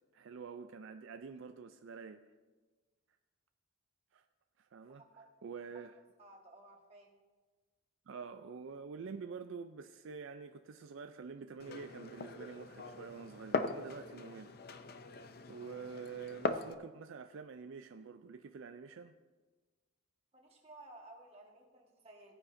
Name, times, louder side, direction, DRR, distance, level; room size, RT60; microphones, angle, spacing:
voice 1, 0.1-2.2 4.1-4.3 4.6-5.0 5.4-6.0 8.1-14.5 15.5-19.1, right 5 dB, 65° right, 0.4 m, -47 dB
voice 2, 4.9-5.3 5.9-7.1 20.3-22.3, right 2 dB, 30° right, 1.6 m, -56 dB
Glass, 11.6-16.7, left 3 dB, 45° left, 0.5 m, -40 dB
17.5 x 9.8 x 2.6 m
head